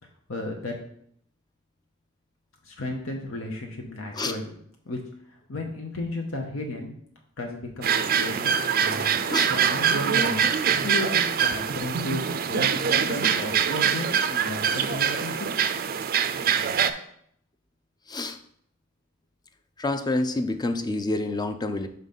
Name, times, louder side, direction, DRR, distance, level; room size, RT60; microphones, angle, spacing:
voice 1, 0.3-0.7 2.6-4.5 4.9-5.0 5.3-6.9 7.4-16.0, left 2 dB, 75° left, 1 dB, 0.9 m, -34 dB
sound 1, 7.8-16.9, right 7 dB, 45° right, 0.4 m, -24 dB
voice 2, 19.8-21.9, left 2 dB, 20° left, 8 dB, 0.4 m, -27 dB
5.5 x 3.9 x 5.3 m, 0.67 s
head